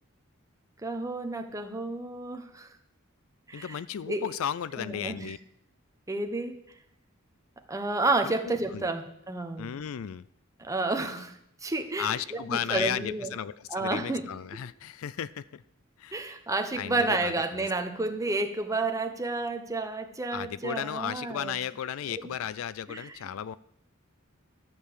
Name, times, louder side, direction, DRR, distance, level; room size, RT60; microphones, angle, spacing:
voice 1, 0.8-2.7 3.5-3.8 4.1-4.3 4.8-5.3 6.1-6.6 7.7-9.8 10.6-11.3 11.6-13.3 13.7-14.3 16.1-21.6 22.2-22.3 22.9-23.2, right 2 dB, 15° right, 6 dB, 1.1 m, -31 dB
voice 2, 3.5-5.4 8.2-8.9 9.6-10.3 12.0-15.6 16.0-16.2 16.7-17.7 20.3-23.6, left 9 dB, 70° left, 18 dB, 0.4 m, -34 dB
12.0 x 6.9 x 8.4 m, 0.74 s
head